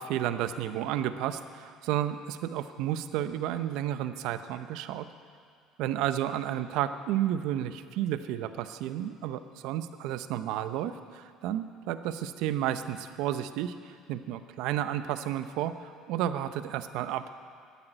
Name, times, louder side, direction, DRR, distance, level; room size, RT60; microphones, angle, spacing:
voice 1, 0.0-5.1 5.8-17.2, right 11 dB, 75° right, 11 dB, 0.8 m, -32 dB
13.0 x 9.8 x 8.9 m, 2.2 s
supercardioid pair, 80°, 0 cm